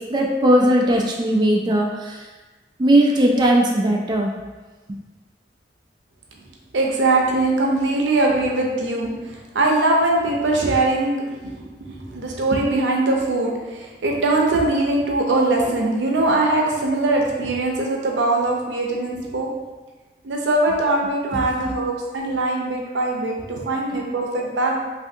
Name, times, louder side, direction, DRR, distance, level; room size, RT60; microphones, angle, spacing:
voice 1, 0.1-2.2 2.8-4.3, right 1 dB, 25° right, 0 dB, 0.3 m, -18 dB
voice 2, 6.7-19.5 20.2-24.8, right 2 dB, 85° right, 0 dB, 0.6 m, -21 dB
3.3 x 2.6 x 2.6 m, 1.3 s
head